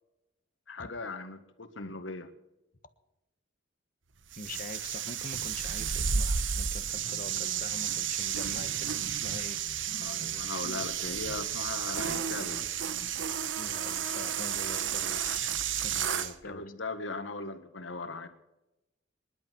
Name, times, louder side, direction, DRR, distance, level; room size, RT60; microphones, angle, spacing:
voice 1, 0.7-2.3 10.0-12.6 16.3-18.3, left 3 dB, 90° left, 9 dB, 1.8 m, -39 dB
sound 1, 4.3-16.3, right 8 dB, 90° right, 1.1 m, -32 dB
voice 2, 4.4-9.6 13.6-16.7, left 3 dB, 45° left, 11 dB, 1.4 m, -44 dB
25.5 x 11.5 x 4.7 m, 0.95 s
head